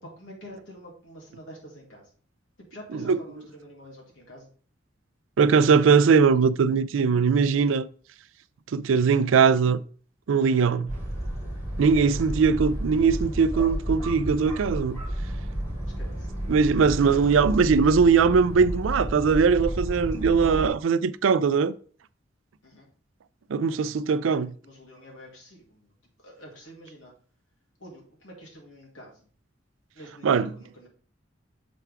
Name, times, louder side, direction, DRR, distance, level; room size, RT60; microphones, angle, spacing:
voice 1, 0.0-2.1 2.6-4.5 11.9-12.2 16.0-16.3 22.6-22.9 24.3-25.9 26.2-27.1 27.8-29.3 29.9-30.9, equal, 80° left, 2.7 m, -46 dB
voice 2, 5.4-7.9 8.7-9.8 10.3-10.9 11.8-15.0 16.5-21.7 23.5-24.5 30.2-30.5, right 5 dB, 85° right, 0.4 m, -20 dB
sound 1, 10.9-20.7, right 1 dB, 15° left, 3.1 m, -32 dB
6.9 x 4.6 x 3.5 m
head